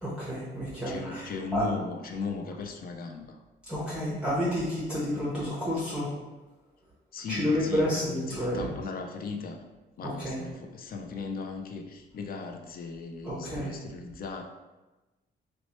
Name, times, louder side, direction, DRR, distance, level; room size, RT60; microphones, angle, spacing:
voice 1, 0.0-1.3 1.5-1.6 3.7-6.1 7.3-8.7 10.0-10.4 13.2-13.7, equal, 5° right, -8 dB, 0.7 m, -30 dB
voice 2, 0.8-3.4 7.1-9.6 10.0-14.4, left 4 dB, 50° left, 4 dB, 0.4 m, -37 dB
2.9 x 2.1 x 2.9 m, 1.1 s
cardioid pair, 90°, 20 cm